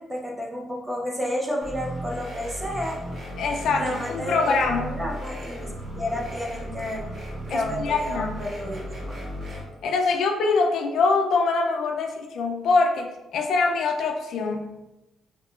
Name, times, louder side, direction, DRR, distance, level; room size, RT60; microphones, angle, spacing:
voice 1, 0.0-3.0 3.8-7.1 7.5-9.2, left 1 dB, 10° right, -1 dB, 0.6 m, -31 dB
sound 1, 1.6-9.6, equal, 50° right, 1.2 m, -35 dB
voice 2, 3.4-4.9 7.5-8.3 9.8-14.8, left 4 dB, 65° left, 3 dB, 0.4 m, -24 dB
3.5 x 3.1 x 2.4 m, 0.96 s
cardioid pair, 140°, 0 cm